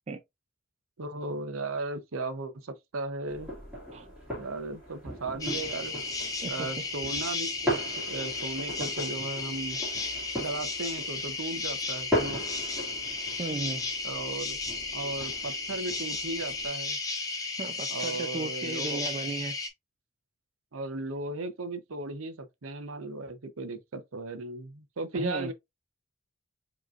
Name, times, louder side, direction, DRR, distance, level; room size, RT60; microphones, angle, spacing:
voice 1, 1.0-3.5 4.3-5.9 6.5-9.8 10.4-12.5 14.0-14.6 14.9-17.0 17.9-19.0 20.7-25.5, right 2 dB, 80° right, 0.7 m, -36 dB
sound 1, 3.3-16.7, equal, 5° right, 2.0 m, -38 dB
sound 2, 5.4-19.7, left 3 dB, 15° left, 0.5 m, -34 dB
voice 2, 6.4-6.7 13.4-13.9 17.6-19.5 25.1-25.5, right 3 dB, 30° right, 0.3 m, -35 dB
4.9 x 3.0 x 2.4 m
head